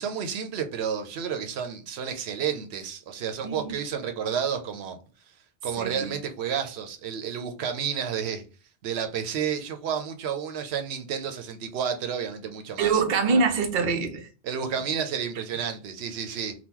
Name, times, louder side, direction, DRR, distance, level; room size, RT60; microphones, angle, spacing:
voice 1, 0.0-5.0 5.6-8.4 8.8-13.0 14.4-16.5, right 7 dB, 85° right, 0.9 m, -31 dB
voice 2, 3.4-3.8 5.8-6.1 12.8-14.3, right 4 dB, 55° right, 0.7 m, -24 dB
2.9 x 2.3 x 3.6 m
omnidirectional pair, 1.1 m